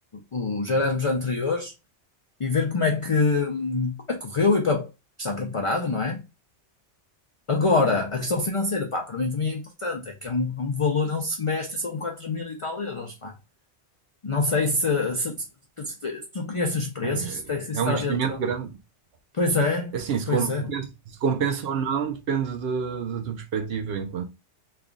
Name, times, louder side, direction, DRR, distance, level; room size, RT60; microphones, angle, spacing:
voice 1, 0.3-1.7 2.4-4.9 5.2-6.2 7.5-13.3 14.2-15.4 15.8-18.4 19.3-20.0 20.3-20.6, left 3 dB, 50° left, 0.4 m, -25 dB
voice 2, 17.0-17.4 17.7-18.8 19.9-20.9 21.2-24.3, right 7 dB, 60° right, 0.8 m, -27 dB
3.3 x 2.3 x 3.7 m
omnidirectional pair, 1.2 m